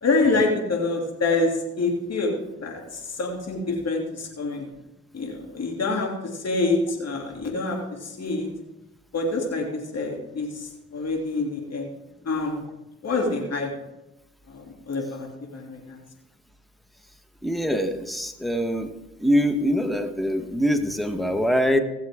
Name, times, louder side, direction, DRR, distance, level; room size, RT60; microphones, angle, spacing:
voice 1, 0.0-4.7 5.1-8.5 9.1-11.9 12.2-12.6 13.0-13.7 14.5-16.0, left 3 dB, 45° left, 1 dB, 2.8 m, -26 dB
voice 2, 17.4-18.9 19.2-21.8, equal, ahead, 7 dB, 1.3 m, -23 dB
16.5 x 7.4 x 3.7 m, 0.96 s
hypercardioid pair, 50°, 34 cm